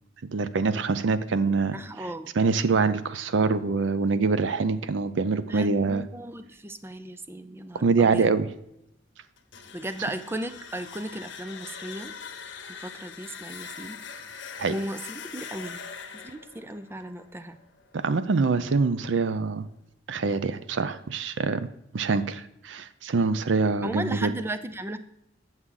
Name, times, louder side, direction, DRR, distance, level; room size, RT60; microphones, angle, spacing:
voice 1, 0.3-2.1 2.3-6.0 7.7-8.5 14.6-14.8 17.9-19.7 20.1-21.7 21.9-24.4, right 4 dB, 85° right, 13 dB, 0.5 m, -25 dB
voice 2, 1.7-2.3 5.5-8.3 9.7-12.1 12.7-14.0 14.7-15.8 16.1-17.6 23.8-25.0, right 1 dB, 15° right, 11 dB, 0.4 m, -36 dB
sound 1, 9.4-18.2, left 6 dB, 85° left, 0.9 m, -42 dB
8.1 x 7.3 x 3.8 m, 0.80 s
head